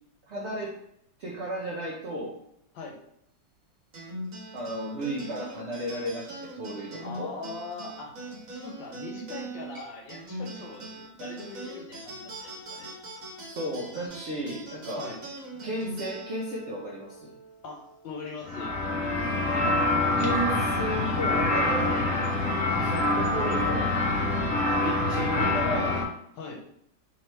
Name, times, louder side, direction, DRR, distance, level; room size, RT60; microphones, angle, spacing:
voice 1, 0.3-0.7 1.2-2.4 4.5-7.3 13.4-15.1 15.6-17.3 20.2-21.9 22.8-24.0 24.8-26.0, right 1 dB, 70° right, -5 dB, 0.6 m, -34 dB
sound 1, 3.9-18.7, right 1 dB, 55° right, 1.3 m, -41 dB
voice 2, 7.0-8.2 8.5-12.9 14.9-15.2 17.6-18.7 21.9-22.1 26.3-26.6, left 3 dB, 85° left, 1 dB, 1.5 m, -41 dB
sound 2, 18.4-26.0, left 2 dB, 60° left, 0.9 m, -26 dB
3.5 x 3.0 x 3.2 m, 0.73 s
omnidirectional pair, 2.0 m